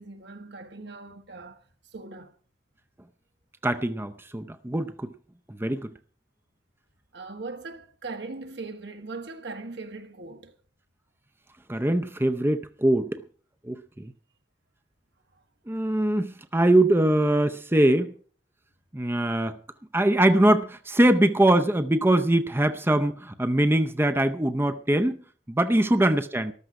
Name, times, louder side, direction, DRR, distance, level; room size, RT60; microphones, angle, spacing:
voice 1, 0.0-1.6 1.9-2.3 7.1-10.5 15.3-15.4 25.8-26.1, right 3 dB, 70° right, 1.6 m, -40 dB
voice 2, 3.6-5.1 5.5-5.9 11.7-13.2 13.6-14.1 15.7-18.1 18.9-19.6 19.9-25.2 25.5-26.5, right 1 dB, 15° right, 0.6 m, -22 dB
14.0 x 12.5 x 4.8 m
head